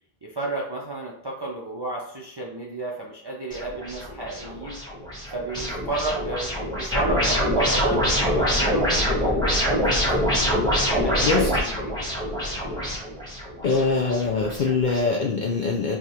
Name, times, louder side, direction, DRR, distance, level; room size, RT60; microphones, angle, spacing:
voice 1, 0.2-4.8 5.3-10.6 11.0-11.9 13.7-13.8, right 2 dB, 35° right, -3 dB, 0.5 m, -32 dB
sound 1, 3.5-15.0, equal, 5° left, 1.1 m, -25 dB
voice 2, 13.6-16.0, left 4 dB, 55° left, -1 dB, 0.6 m, -23 dB
4.7 x 2.4 x 2.8 m, 0.69 s
omnidirectional pair, 1.0 m